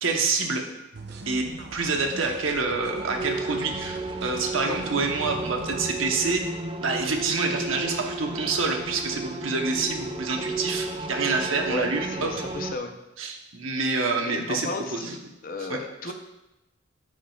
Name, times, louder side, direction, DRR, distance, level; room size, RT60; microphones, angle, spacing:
voice 1, 0.0-0.6 1.3-6.5 6.8-12.3 13.2-15.1 15.7-15.8, right 3 dB, 85° right, 3 dB, 1.0 m, -27 dB
sound 1, 0.9-5.9, right 2 dB, 60° right, 0.8 m, -42 dB
sound 2, 2.7-12.8, right 2 dB, 25° right, 0.4 m, -33 dB
voice 2, 11.7-12.9 14.2-15.2 15.4-16.1, left 2 dB, 45° left, 5 dB, 0.7 m, -34 dB
13.0 x 4.9 x 2.4 m, 0.97 s
head